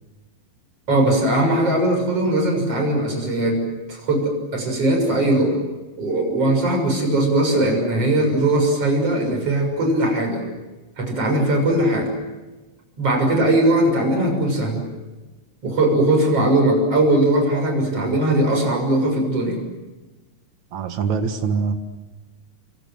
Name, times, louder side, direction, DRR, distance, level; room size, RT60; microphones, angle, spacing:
voice 1, 0.9-3.6 3.9-5.6 6.0-10.4 11.0-12.1 13.0-14.8 15.6-19.6, right 1 dB, 30° right, 3 dB, 7.5 m, -19 dB
voice 2, 20.7-21.7, right 5 dB, 55° right, 7 dB, 2.2 m, -24 dB
29.0 x 24.0 x 7.8 m, 1.2 s
omnidirectional pair, 5.2 m